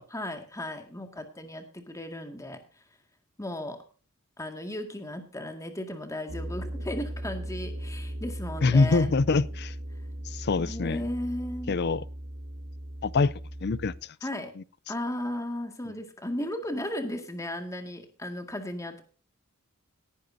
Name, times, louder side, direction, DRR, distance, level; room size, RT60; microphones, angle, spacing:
voice 1, 0.0-2.6 3.4-3.8 4.4-9.1 10.6-11.8 14.2-14.5 14.9-19.0, left 1 dB, 15° left, 2.0 m, -35 dB
sound 1, 6.3-14.0, right 1 dB, 55° right, 1.3 m, -38 dB
voice 2, 8.6-9.7 10.3-11.1 11.7-12.0 13.0-13.3 13.6-13.9 14.6-14.7, left 3 dB, 50° left, 0.5 m, -24 dB
18.5 x 10.5 x 2.7 m
head